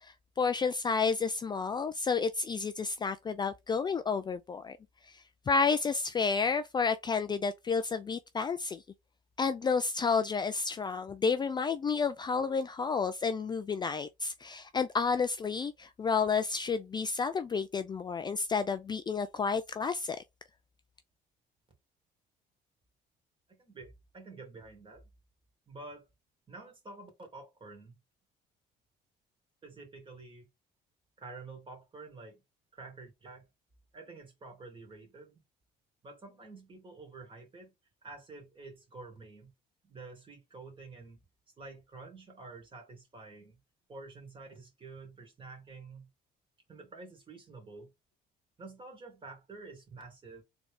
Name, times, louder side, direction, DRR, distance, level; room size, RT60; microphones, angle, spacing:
voice 1, 0.0-4.8 5.1-8.8 9.4-20.2, left 5 dB, 25° left, 0.4 m, -31 dB
voice 2, 23.5-25.1 25.7-26.1 26.5-28.0 29.6-30.5 31.2-32.4 32.7-33.5 33.9-35.4 36.0-37.7 38.0-39.5 39.8-41.2 41.6-43.6 43.9-46.1 46.7-47.9 48.6-50.4, right 3 dB, 30° right, 2.3 m, -49 dB
3.8 x 3.4 x 3.4 m
cardioid pair, 110°, 17 cm